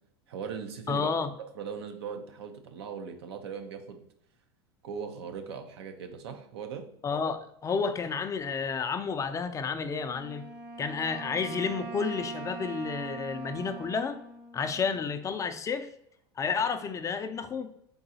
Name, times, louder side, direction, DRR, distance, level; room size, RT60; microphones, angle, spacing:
voice 1, 0.3-1.1 1.5-4.0 4.8-6.8, right 6 dB, 75° right, 6 dB, 0.7 m, -39 dB
voice 2, 0.9-1.3 7.0-10.4 10.8-14.2 14.5-15.9 16.4-17.7, left 5 dB, 25° left, 9 dB, 0.4 m, -31 dB
Wind instrument woodwind instrument, 10.0-15.4, right 3 dB, 40° right, 0.7 m, -42 dB
3.8 x 3.8 x 2.7 m, 0.73 s
hypercardioid pair, 95°, 13 cm